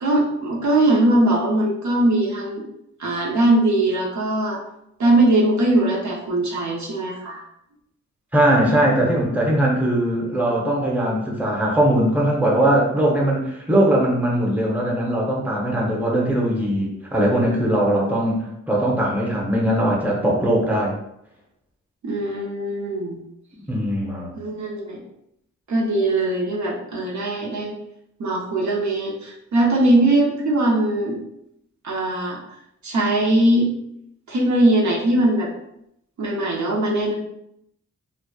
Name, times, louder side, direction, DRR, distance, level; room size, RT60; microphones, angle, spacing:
voice 1, 0.0-2.6 3.0-4.6 5.0-7.4 8.7-8.8 22.0-23.2 24.3-25.0 25.7-27.7 28.2-31.2 31.8-32.4 32.8-33.7 34.3-35.5 36.2-37.1, right 1 dB, 65° right, -2 dB, 0.6 m, -20 dB
voice 2, 8.3-20.9 23.7-24.3, right 1 dB, 5° right, -3 dB, 0.8 m, -20 dB
2.8 x 2.1 x 2.2 m, 0.78 s
cardioid pair, 55°, 31 cm